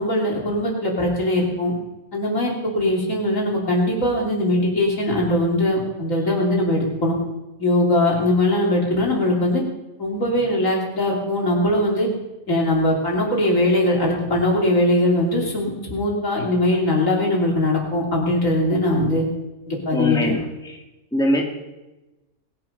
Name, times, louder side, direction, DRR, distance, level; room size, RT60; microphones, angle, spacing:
voice 1, 0.0-1.7 2.1-7.1 7.6-9.6 10.0-12.1 12.5-19.2 19.7-20.3, left 1 dB, 60° left, -2 dB, 3.7 m, -21 dB
voice 2, 19.9-20.4 20.6-20.7 21.1-21.4, left 1 dB, 5° left, 0 dB, 2.1 m, -21 dB
20.5 x 11.5 x 5.3 m, 1.0 s
omnidirectional pair, 1.6 m